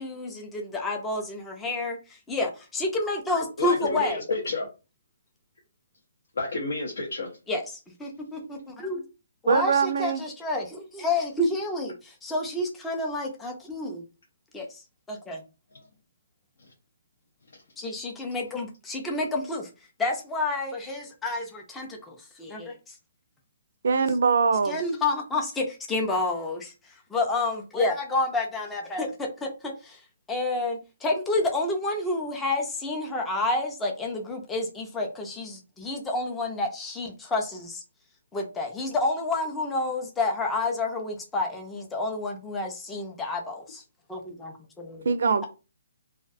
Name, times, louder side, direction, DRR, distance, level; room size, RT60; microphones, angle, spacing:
voice 1, 0.0-4.2 7.5-7.6 8.0-9.0 9.4-14.0 14.5-14.7 15.1-15.4 17.8-19.7 20.0-22.9 24.7-26.7 27.1-30.0 30.3-37.8 38.3-43.8 44.1-45.0, left 2 dB, 10° left, 0.4 m, -29 dB
voice 2, 3.6-4.7 6.4-7.3 15.7-15.8, left 2 dB, 75° left, 0.6 m, -30 dB
voice 3, 9.4-10.2 23.8-24.8 45.0-45.5, right 5 dB, 65° right, 0.4 m, -22 dB
2.3 x 2.1 x 2.5 m
hypercardioid pair, 160°, 0 cm